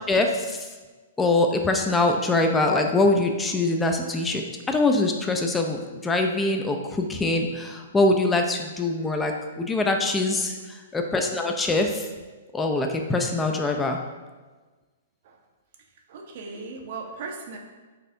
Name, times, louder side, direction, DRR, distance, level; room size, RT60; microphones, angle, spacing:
voice 1, 0.1-0.6 1.2-4.4 4.7-10.5 10.9-12.0 12.5-14.0, left 2 dB, 10° left, 3 dB, 0.4 m, -23 dB
voice 2, 10.1-10.5 15.2-15.4 16.1-17.6, right 4 dB, 55° right, 2 dB, 0.6 m, -38 dB
4.1 x 2.6 x 2.5 m, 1.3 s
hypercardioid pair, 115°, 0 cm